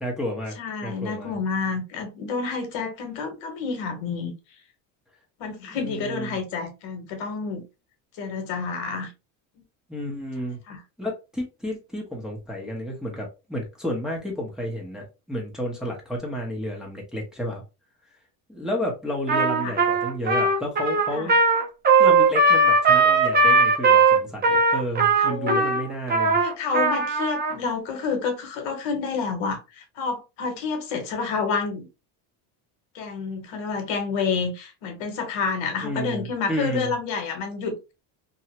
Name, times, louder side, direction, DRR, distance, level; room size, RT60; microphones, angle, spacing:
voice 1, 0.0-0.6 0.8-1.3 5.7-6.4 9.9-10.6 11.0-17.6 18.5-21.3 22.0-26.4 35.8-36.9, equal, ahead, 0.9 m, -31 dB
voice 2, 0.6-4.3 5.4-7.6 8.2-9.1 10.7-10.8 19.6-19.7 21.1-21.3 25.2-25.7 26.4-31.9 32.9-37.8, left 5 dB, 70° left, 1.1 m, -29 dB
Trumpet, 19.3-27.5, right 3 dB, 20° right, 0.5 m, -19 dB
2.7 x 2.4 x 2.8 m
cardioid pair, 115°, 49 cm